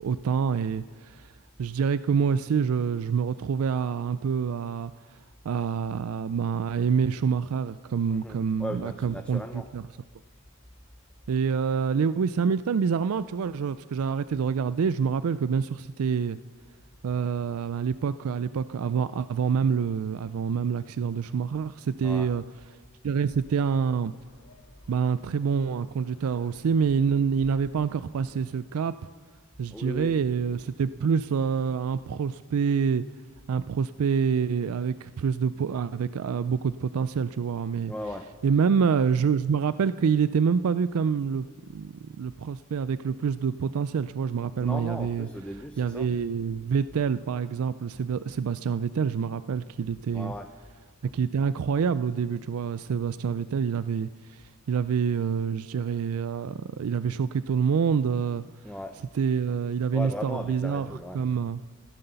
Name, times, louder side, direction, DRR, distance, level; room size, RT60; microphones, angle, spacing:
voice 1, 0.0-1.3 1.6-5.2 5.4-9.8 11.3-16.4 17.0-22.4 23.0-24.1 24.9-28.9 29.6-33.0 33.5-37.9 38.4-45.3 45.8-50.3 51.1-58.4 59.1-61.6, right 6 dB, 85° right, 15 dB, 0.4 m, -27 dB
voice 2, 8.1-9.7 22.0-22.3 29.7-30.1 37.9-38.3 44.6-46.1 50.1-50.5 58.6-58.9 59.9-61.2, equal, 5° left, 5 dB, 0.5 m, -37 dB
sound 1, 23.3-28.5, left 1 dB, 80° left, 1.3 m, -55 dB
15.0 x 12.5 x 6.8 m, 1.4 s
head